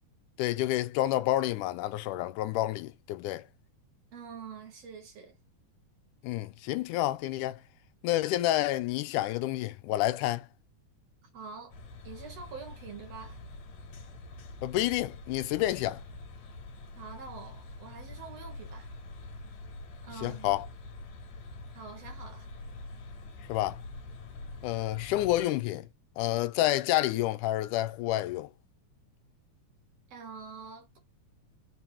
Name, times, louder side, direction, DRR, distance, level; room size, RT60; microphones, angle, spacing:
voice 1, 0.4-3.5 6.2-7.6 8.0-10.5 14.6-16.0 20.2-20.7 23.5-23.8 24.6-25.9 26.2-28.5, left 15 dB, 90° left, 2.1 m, -29 dB
voice 2, 4.1-5.4 11.3-11.8 12.0-13.4 17.0-18.9 20.0-20.6 21.7-22.5 30.1-31.0, right 5 dB, 60° right, 2.4 m, -45 dB
sound 1, 11.7-25.4, left 3 dB, 65° left, 2.5 m, -45 dB
5.3 x 2.9 x 3.4 m
omnidirectional pair, 3.6 m